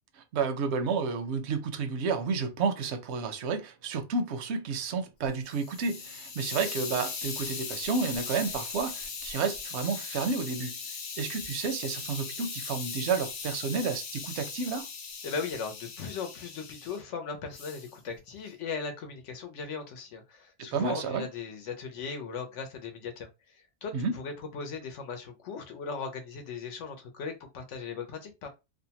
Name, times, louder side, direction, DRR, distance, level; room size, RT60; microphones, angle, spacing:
voice 1, 0.2-10.8 11.2-14.9 20.7-21.3 23.9-24.1, right 5 dB, 70° right, 0.8 m, -31 dB
Hiss, 5.2-17.0 17.5-17.9, left 5 dB, 60° left, 0.8 m, -39 dB
voice 2, 15.2-28.5, left 5 dB, 80° left, 1.0 m, -38 dB
2.7 x 2.1 x 2.8 m
omnidirectional pair, 1.3 m